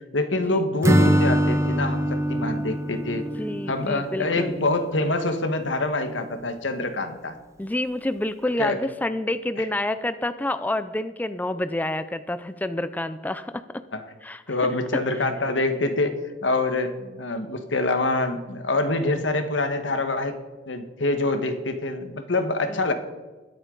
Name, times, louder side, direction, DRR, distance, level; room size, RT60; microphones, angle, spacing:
voice 1, 0.1-3.3 3.7-7.4 8.6-8.8 9.6-9.7 13.9-14.0 14.5-16.1 16.4-20.4 20.7-22.9, left 2 dB, 85° left, 7 dB, 1.4 m, -25 dB
Acoustic guitar / Strum, 0.8-4.7, equal, 15° right, 0.7 m, -23 dB
voice 2, 3.4-4.6 7.6-13.6 14.2-14.5 22.7-22.8, left 1 dB, 10° left, 11 dB, 0.4 m, -28 dB
21.0 x 8.1 x 3.9 m, 1.2 s
head